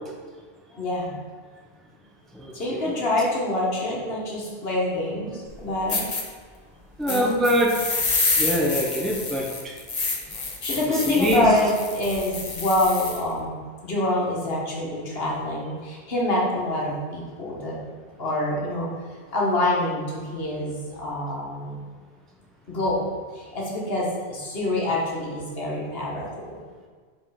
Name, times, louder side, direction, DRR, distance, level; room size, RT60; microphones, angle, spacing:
voice 1, 0.7-1.2 2.5-6.1 7.1-7.4 10.6-13.6 13.8-17.8 18.2-18.9 19.3-21.8 22.7-26.5, left 1 dB, 60° left, -4 dB, 1.5 m, -26 dB
voice 2, 2.4-2.8 7.0-7.7 8.3-9.5 11.1-11.4, equal, ahead, -1 dB, 0.6 m, -23 dB
sound 1, 5.5-5.6 5.9-6.2 7.1-13.2, left 3 dB, 40° left, 0.8 m, -28 dB
5.4 x 3.8 x 4.7 m, 1.6 s
omnidirectional pair, 1.2 m